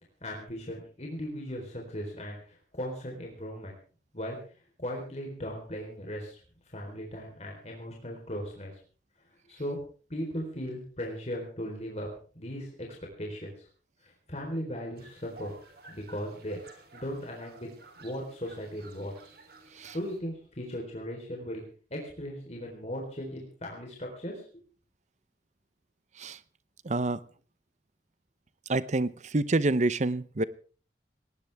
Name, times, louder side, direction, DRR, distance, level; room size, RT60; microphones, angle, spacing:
voice 1, 0.2-3.7 4.1-4.4 4.8-6.4 6.7-8.7 9.5-9.8 10.1-12.1 12.3-12.9 13.2-13.7 14.0-15.5 15.9-17.7 18.0-19.1 19.9-21.6 21.9-24.6, equal, 40° left, 0 dB, 4.0 m, -37 dB
sound 1, 15.0-20.2, right 3 dB, 60° right, 3.6 m, -53 dB
voice 2, 26.8-27.2 28.7-30.4, right 2 dB, 40° right, 17 dB, 0.8 m, -27 dB
19.0 x 18.0 x 3.5 m, 0.41 s
head